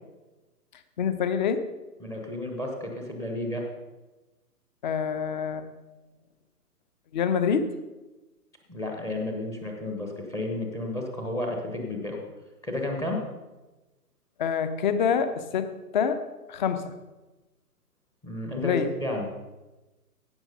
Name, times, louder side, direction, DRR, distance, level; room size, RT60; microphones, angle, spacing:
voice 1, 1.0-1.6 4.8-5.7 7.1-7.6 14.4-16.2 16.5-16.9 18.6-18.9, left 7 dB, 30° left, 10 dB, 0.9 m, -26 dB
voice 2, 2.0-3.6 8.7-12.2 12.6-13.2 18.2-19.3, left 1 dB, 5° left, 1 dB, 0.9 m, -32 dB
16.5 x 5.9 x 5.2 m, 1.1 s
figure-of-eight pair, 135°, 47 cm